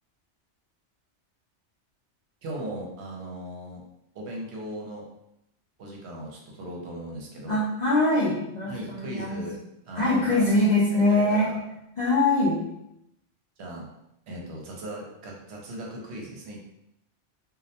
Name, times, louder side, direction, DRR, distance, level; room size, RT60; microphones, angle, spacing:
voice 1, 2.4-3.8 4.1-5.0 5.8-7.6 8.7-9.6 9.8-11.6 13.6-13.9 14.3-16.6, right 1 dB, 70° right, -1 dB, 0.8 m, -38 dB
voice 2, 7.5-9.4 9.9-11.5 12.0-12.6, left 2 dB, 65° left, -7 dB, 0.4 m, -23 dB
2.3 x 2.0 x 2.7 m, 0.81 s
omnidirectional pair, 1.2 m